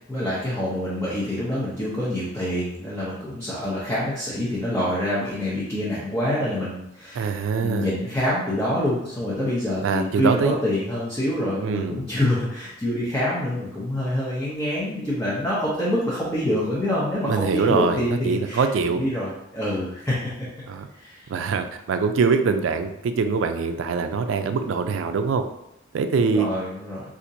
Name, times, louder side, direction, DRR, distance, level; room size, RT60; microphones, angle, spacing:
voice 1, 0.1-20.5 21.0-21.3 26.2-27.0, left 1 dB, 10° left, -9 dB, 0.7 m, -26 dB
voice 2, 7.1-7.9 9.8-10.6 11.6-12.0 17.2-19.0 20.7-20.9 21.3-25.4 25.9-26.5, right 5 dB, 80° right, 7 dB, 0.3 m, -23 dB
4.2 x 2.5 x 2.6 m, 0.81 s
head